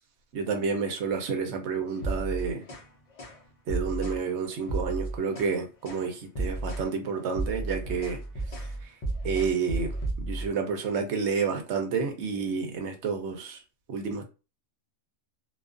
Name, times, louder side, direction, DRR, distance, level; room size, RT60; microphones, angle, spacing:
voice 1, 0.3-2.6 3.7-8.2 8.8-8.9 9.2-13.6 13.9-14.3, right 5 dB, 65° right, 0.9 m, -30 dB
sound 1, 1.9-2.9 3.2-3.4 3.7-4.2 4.6-5.6 5.8-6.1 6.3-6.9 7.2-10.5, right 2 dB, 50° left, 0.4 m, -33 dB
2.3 x 2.3 x 2.4 m
omnidirectional pair, 1.3 m